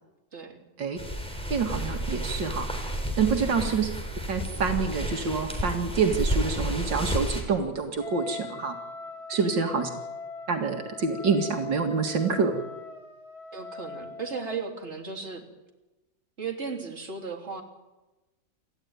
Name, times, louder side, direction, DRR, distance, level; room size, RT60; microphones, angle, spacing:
sound 1, 1.0-7.4, equal, 5° left, 4.0 m, -31 dB
voice 1, 1.5-2.7 3.2-3.9 4.3-8.8 9.3-9.9 10.5-12.6, right 5 dB, 75° right, 4 dB, 2.6 m, -27 dB
Wind instrument woodwind instrument, 8.0-14.6, left 4 dB, 55° left, 2.9 m, -41 dB
voice 2, 9.3-9.8 13.5-15.4 16.4-17.6, right 5 dB, 35° right, 2 dB, 3.4 m, -36 dB
28.0 x 14.0 x 9.5 m, 1.1 s
omnidirectional pair, 2.0 m